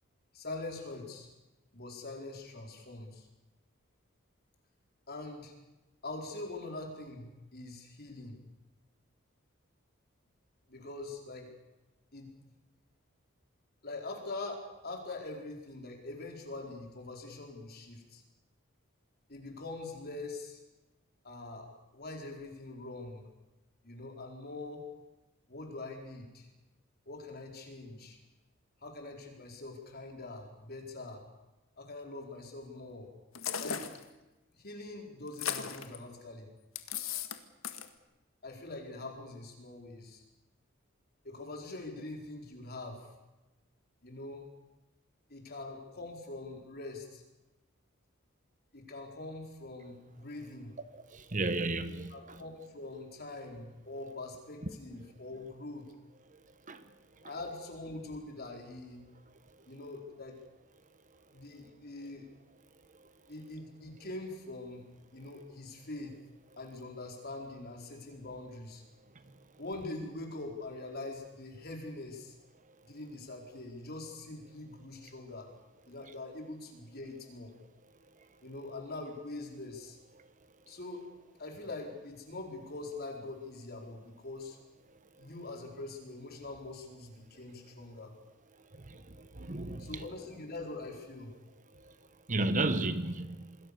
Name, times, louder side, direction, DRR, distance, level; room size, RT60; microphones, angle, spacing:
voice 1, 0.3-1.3 1.7-3.3 5.1-5.5 6.0-8.4 10.7-11.5 12.1-12.3 13.8-18.2 19.3-20.6 21.2-23.3 23.8-24.9 25.5-26.5 27.1-28.2 28.8-31.2 31.8-33.1 33.6-33.9 34.5-36.5 38.4-40.2 41.2-43.1 44.0-44.5 45.3-47.2 48.7-50.7 51.9-55.9 57.2-59.1 59.7-60.4 61.3-62.3 63.3-64.9 65.1-66.2 66.6-68.8 69.6-72.3 72.8-75.5 75.9-77.5 78.4-80.0 80.7-81.1 81.4-84.6 85.2-88.1 89.8-91.3, left 2 dB, 50° left, 4.7 m, -43 dB
sound 1, 33.3-34.0 35.3-36.0 36.7-37.4 37.6-37.9, left 8 dB, 85° left, 1.8 m, -36 dB
voice 2, 51.1-52.1 56.7-56.8 89.4-89.9 92.3-93.5, right 2 dB, 40° right, 1.3 m, -32 dB
27.0 x 21.0 x 6.9 m
head